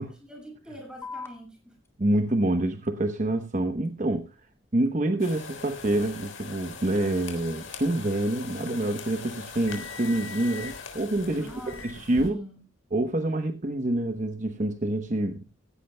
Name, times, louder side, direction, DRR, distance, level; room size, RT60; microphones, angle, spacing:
voice 1, 0.0-1.8 11.3-12.6, equal, 5° right, 6.4 m, -45 dB
sound 1, 1.0-8.0, left 4 dB, 15° left, 2.4 m, -50 dB
voice 2, 2.0-4.4 4.7-12.4 12.9-15.5, right 1 dB, 40° right, 0.9 m, -27 dB
sound 2, 5.2-12.3, left 5 dB, 75° left, 3.5 m, -41 dB
16.5 x 16.0 x 2.2 m
head